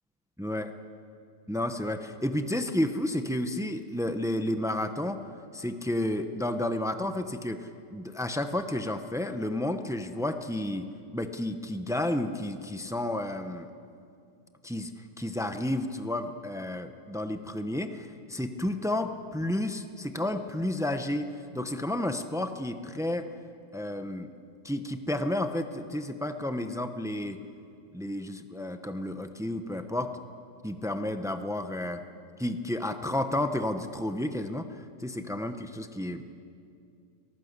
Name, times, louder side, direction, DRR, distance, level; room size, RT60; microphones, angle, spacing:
voice 1, 0.4-0.7 1.5-5.2 5.5-10.9 11.1-13.7 14.6-23.3 23.7-24.3 24.6-27.4 27.9-30.1 30.6-32.0 32.4-34.7 35.0-36.2, left 1 dB, 5° right, 7 dB, 0.3 m, -31 dB
24.0 x 18.5 x 8.1 m, 2.5 s
omnidirectional pair, 1.8 m